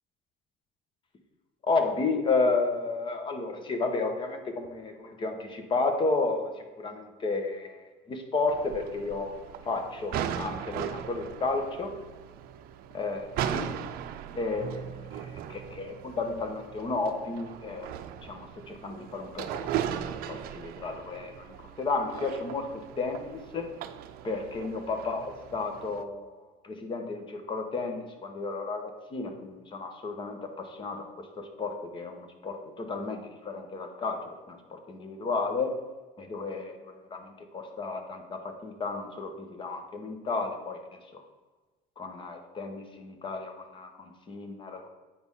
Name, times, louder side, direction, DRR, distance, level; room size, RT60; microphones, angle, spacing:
voice 1, 1.6-9.3 9.6-11.9 12.9-13.7 14.3-17.9 18.2-23.7 24.2-26.4 26.6-35.7 36.2-41.2 42.0-44.9, left 3 dB, 30° left, 6 dB, 1.1 m, -32 dB
sound 1, 8.5-26.0, right 9 dB, 75° right, 0.6 m, -38 dB
8.8 x 4.3 x 5.5 m, 1.2 s
cardioid pair, 145°, 16 cm